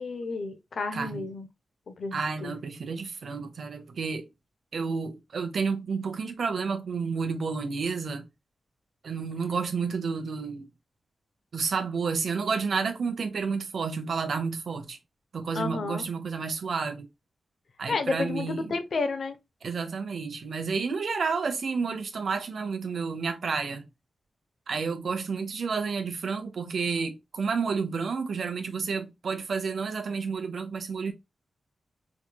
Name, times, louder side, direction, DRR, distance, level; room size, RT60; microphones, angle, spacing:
voice 1, 0.0-1.5 1.9-2.6 15.5-16.1 17.9-19.4, left 3 dB, 60° left, 0.7 m, -31 dB
voice 2, 0.9-1.2 2.1-4.3 4.7-8.2 9.0-10.7 11.5-15.0 15.3-17.1 17.8-18.7 19.6-23.9 24.7-31.1, right 5 dB, 65° right, 0.9 m, -30 dB
4.9 x 3.1 x 2.2 m
wide cardioid pair, 140°, 0 cm